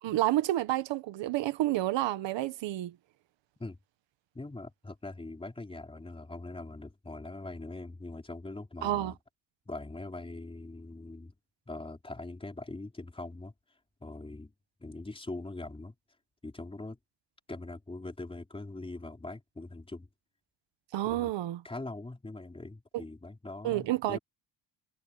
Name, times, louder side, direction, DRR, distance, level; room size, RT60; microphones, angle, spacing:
voice 1, 0.0-2.9 8.8-9.1 20.9-21.6 23.6-24.2, right 15 dB, 85° right, 1.5 m, -29 dB
voice 2, 4.3-9.2 9.7-11.3 11.7-13.5 14.0-14.5 14.8-15.9 16.4-17.0 17.5-20.1 21.0-21.3 21.6-24.2, left 2 dB, 10° left, 4.5 m, -42 dB
cardioid pair, 135°, 43 cm